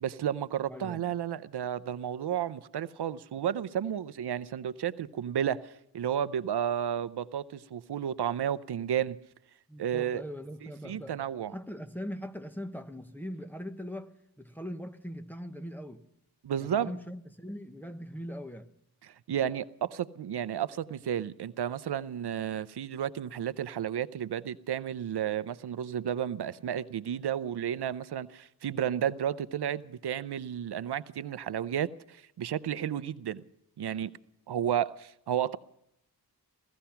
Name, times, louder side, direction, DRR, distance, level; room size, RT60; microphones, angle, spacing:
voice 1, 0.0-9.2 9.8-10.2 10.8-11.5 16.4-16.9 19.0-33.4 33.8-34.1 34.5-35.6, right 9 dB, 85° right, 0.6 m, -32 dB
voice 2, 0.7-1.1 9.7-11.2 11.5-16.0 16.6-18.7, equal, 5° left, 1.0 m, -41 dB
17.0 x 14.5 x 5.7 m
wide cardioid pair, 115°, 39 cm